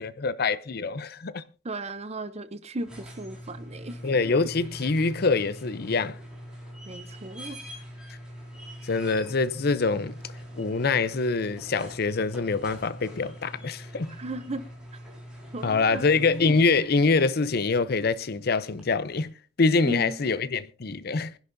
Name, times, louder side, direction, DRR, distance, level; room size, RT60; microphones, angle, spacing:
voice 1, 0.0-1.4 4.0-6.2 8.8-10.2 10.6-14.2 15.6-19.3 19.6-21.3, left 4 dB, 55° left, 0.6 m, -25 dB
voice 2, 1.6-4.0 6.9-7.8 14.1-14.6 15.5-16.0 19.8-20.2, right 2 dB, 35° right, 0.7 m, -35 dB
sound 1, 2.8-17.0 18.8-18.9, equal, 5° right, 4.6 m, -43 dB
23.5 x 11.0 x 2.6 m
head